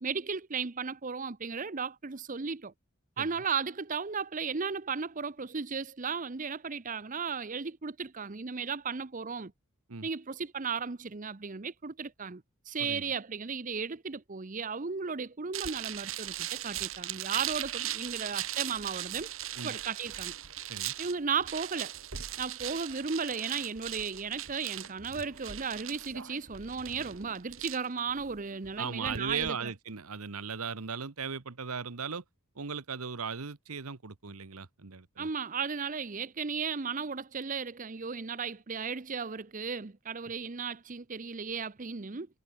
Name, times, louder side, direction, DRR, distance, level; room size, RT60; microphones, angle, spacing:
voice 1, 0.0-2.7 3.2-9.5 10.0-19.3 19.6-20.3 21.0-21.9 22.4-29.7 35.2-42.3, right 5 dB, 35° right, 0.7 m, -35 dB
sound 1, 15.5-29.5, right 12 dB, 65° right, 1.7 m, -39 dB
voice 2, 28.8-32.2 32.5-35.3, right 6 dB, 85° right, 1.2 m, -37 dB
head